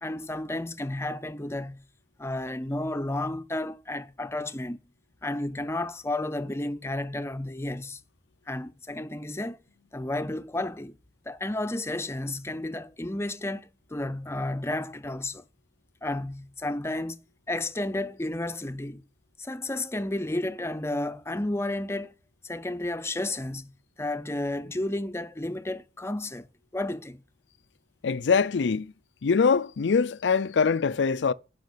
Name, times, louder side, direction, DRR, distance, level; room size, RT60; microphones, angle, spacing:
voice 1, 0.0-1.8 2.2-4.8 5.2-8.0 8.5-9.6 9.9-11.0 11.3-15.4 16.0-17.2 17.5-19.0 19.4-22.1 22.4-23.7 24.0-26.5 26.7-27.2, left 1 dB, 15° left, 0.6 m, -32 dB
voice 2, 28.0-28.9 29.2-31.3, left 5 dB, 75° left, 0.5 m, -23 dB
10.5 x 5.7 x 8.4 m
head